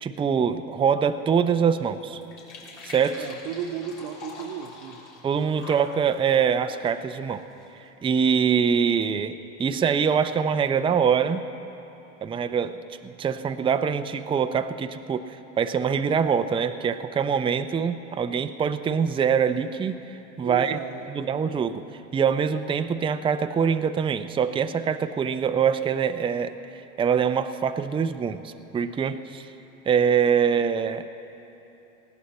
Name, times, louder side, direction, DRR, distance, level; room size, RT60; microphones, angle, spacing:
voice 1, 0.0-2.2 2.8-3.3 5.2-7.4 8.0-11.4 12.2-20.0 20.4-20.8 21.1-21.8 22.1-29.5 29.9-31.0, right 7 dB, 15° right, 9 dB, 0.5 m, -24 dB
sound 1, 0.7-7.9, left 3 dB, 75° left, 3.5 m, -46 dB
voice 2, 3.2-5.0 20.4-21.1, right 8 dB, 60° right, 2 dB, 1.0 m, -34 dB
19.0 x 16.0 x 4.2 m, 3.0 s
hypercardioid pair, 95°, 36 cm